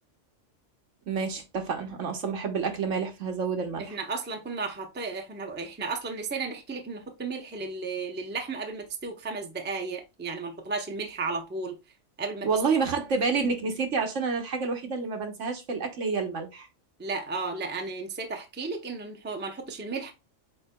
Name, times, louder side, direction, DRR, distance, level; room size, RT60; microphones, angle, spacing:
voice 1, 1.1-4.0 12.4-16.7, right 5 dB, 65° right, 1.3 m, -29 dB
voice 2, 3.8-11.8 12.2-12.5 17.0-20.1, right 4 dB, 10° right, 0.6 m, -34 dB
8.4 x 2.8 x 2.2 m
omnidirectional pair, 1.4 m